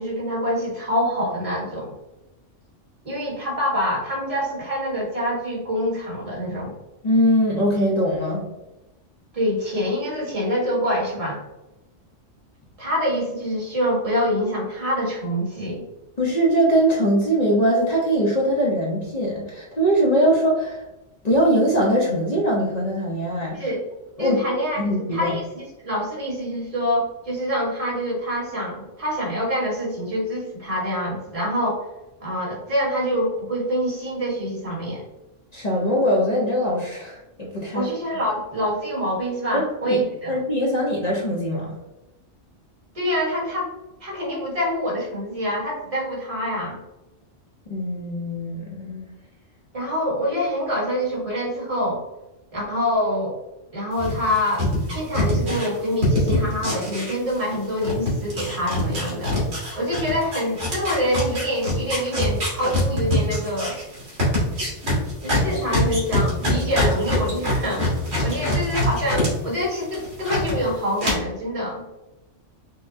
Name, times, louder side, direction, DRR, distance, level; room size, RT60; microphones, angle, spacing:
voice 1, 0.0-1.9 3.0-6.7 9.3-11.4 12.8-15.8 23.5-23.8 24.2-31.8 32.2-35.0 37.7-40.4 42.9-43.7 44.0-46.8 49.7-52.0 52.5-53.4 53.7-59.3 59.7-63.8 65.2-68.0 68.2-71.9, equal, 30° right, -5 dB, 1.3 m, -25 dB
voice 2, 7.0-8.4 16.2-20.8 21.2-23.6 24.2-24.4 24.8-25.4 35.5-37.8 39.8-40.0 40.3-41.7 47.7-49.1, equal, 40° left, -5 dB, 0.8 m, -21 dB
sound 1, 54.0-57.6 57.8-69.3 69.6-70.5 71.0-71.1, left 1 dB, 75° right, 2.0 m, -24 dB
5.4 x 2.2 x 2.6 m, 0.99 s
omnidirectional pair, 1.3 m